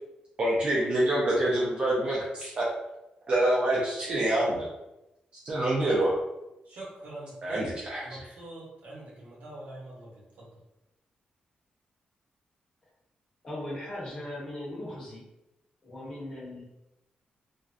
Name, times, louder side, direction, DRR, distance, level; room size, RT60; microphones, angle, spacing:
voice 1, 0.4-2.7 3.3-4.7 5.5-6.2 7.4-8.2, right 1 dB, 35° right, -6 dB, 0.4 m, -26 dB
voice 2, 6.7-7.7 8.0-10.5, right 1 dB, 70° right, -5 dB, 0.8 m, -44 dB
voice 3, 13.4-15.2 15.8-16.6, left 1 dB, 25° left, -8 dB, 1.0 m, -38 dB
2.4 x 2.1 x 2.4 m, 0.93 s
wide cardioid pair, 175°, 3 cm